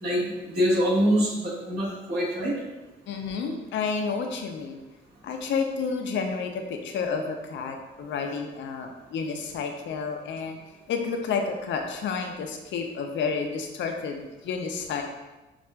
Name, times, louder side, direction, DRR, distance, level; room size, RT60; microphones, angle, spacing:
voice 1, 0.0-2.6, equal, 55° right, -6 dB, 1.4 m, -25 dB
voice 2, 3.1-4.8 5.2-10.6 10.9-15.0, left 5 dB, 70° left, 4 dB, 0.5 m, -30 dB
5.8 x 2.4 x 2.2 m, 1.1 s
cardioid pair, 90°, 20 cm